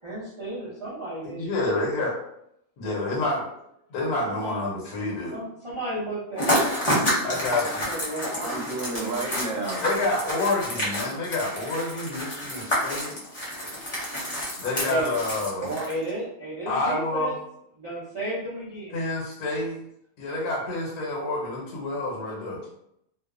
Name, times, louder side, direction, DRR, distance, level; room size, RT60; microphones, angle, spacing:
voice 1, 0.0-1.6 4.2-4.6 5.3-8.8 14.8-15.1 15.8-17.3 17.8-19.0, right 1 dB, 40° right, -10 dB, 0.4 m, -34 dB
voice 2, 1.2-2.1 2.8-3.4 3.9-5.3 7.2-7.9 9.8-13.2 14.6-15.7 16.7-17.3 18.9-19.8 20.2-22.6, left 2 dB, 80° left, -3 dB, 1.2 m, -28 dB
sound 1, 6.3-16.1, equal, 30° left, 0.8 m, -29 dB
voice 3, 8.4-9.8 15.6-15.9, right 3 dB, 65° right, -3 dB, 1.1 m, -31 dB
2.7 x 2.0 x 2.4 m, 0.77 s
omnidirectional pair, 1.6 m